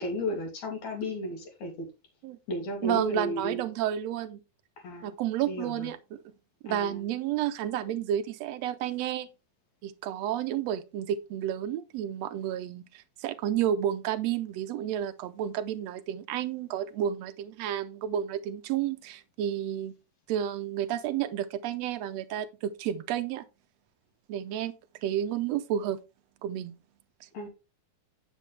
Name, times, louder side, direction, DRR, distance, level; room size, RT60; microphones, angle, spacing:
voice 1, 0.0-1.9 2.5-3.6 4.8-5.1 5.5-5.9 6.7-7.0 27.3-27.5, left 1 dB, 65° left, 4.0 m, -34 dB
voice 2, 2.8-4.4 5.0-6.2 6.6-9.3 9.8-19.9 20.3-23.4 24.3-24.7 25.0-26.0 26.4-26.8, right 10 dB, 75° right, 1.6 m, -31 dB
9.0 x 8.2 x 3.3 m
omnidirectional pair, 3.6 m